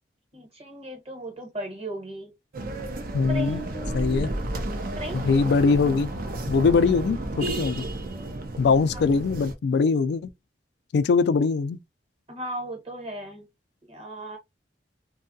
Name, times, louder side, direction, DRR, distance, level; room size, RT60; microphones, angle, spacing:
voice 1, 0.3-2.3 3.3-4.5 5.0-5.2 8.9-9.0 12.3-13.5 13.8-14.4, right 1 dB, 35° right, 1.1 m, -36 dB
sound 1, 2.5-9.5, right 1 dB, 55° right, 0.6 m, -32 dB
voice 2, 3.1-3.6 3.9-4.3 5.1-6.1 6.5-7.8 8.6-10.3 10.9-11.8, left 4 dB, 65° left, 0.3 m, -22 dB
2.6 x 2.3 x 2.5 m
head